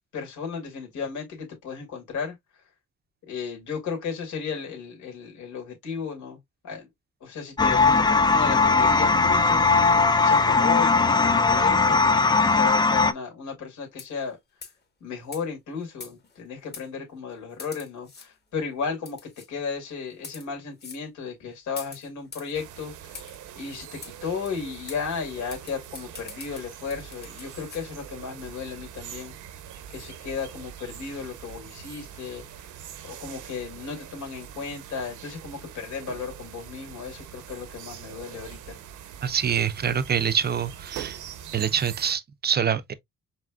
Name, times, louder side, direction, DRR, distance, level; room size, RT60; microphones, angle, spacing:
voice 1, 0.1-2.3 3.3-6.4 6.6-6.9 7.2-9.6 10.2-14.4 15.0-19.2 19.5-23.3 23.5-29.3 29.9-32.4 33.0-38.8, left 5 dB, 75° left, 2.6 m, -34 dB
sound 1, 7.6-13.1, left 4 dB, 15° left, 0.4 m, -19 dB
sound 2, 13.9-14.3 14.6-14.8 15.3-15.4 16.0-16.4 16.7-16.9 17.6-18.3 19.1-19.5 20.1-20.5 20.8-21.0 21.8-22.5 23.1-23.4 24.0-24.1 24.5-24.6 24.9-25.0 25.5-27.8, left 4 dB, 35° left, 1.6 m, -43 dB
sound 3, 22.5-42.2, right 9 dB, 80° right, 0.9 m, -43 dB
voice 2, 39.2-41.2 41.5-42.9, right 8 dB, 35° right, 0.5 m, -25 dB
4.9 x 3.4 x 2.3 m
cardioid pair, 90°, 30 cm